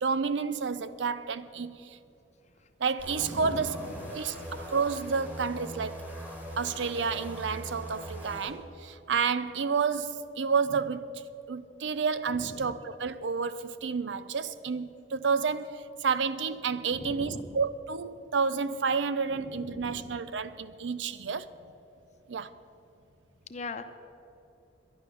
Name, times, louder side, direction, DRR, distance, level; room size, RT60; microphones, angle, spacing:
voice 1, 0.0-2.0 2.8-3.8 4.1-6.0 6.6-11.2 11.5-21.5 22.3-22.5, right 5 dB, 85° right, 0.6 m, -30 dB
sound 1, 3.0-8.5, equal, 10° right, 2.2 m, -41 dB
voice 2, 3.3-4.4 12.4-12.7 16.9-17.6 19.3-20.2 23.5-23.8, left 2 dB, 40° left, 0.8 m, -41 dB
11.0 x 11.0 x 6.8 m
head